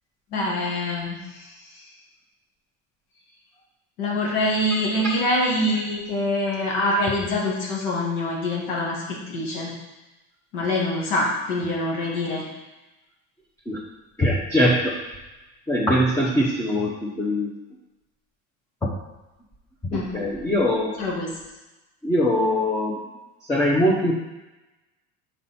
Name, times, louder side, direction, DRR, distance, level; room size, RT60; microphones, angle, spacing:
voice 1, 0.3-1.5 4.0-9.7 10.5-12.4 19.9-20.1 21.0-21.3, left 1 dB, 85° left, -4 dB, 1.7 m, -25 dB
voice 2, 14.2-15.0 15.7-17.5 18.8-18.9 20.1-21.0 22.0-23.0 23.5-24.2, equal, 10° left, -6 dB, 0.9 m, -22 dB
5.2 x 4.3 x 4.3 m, 1.1 s
supercardioid pair, 115°, 33 cm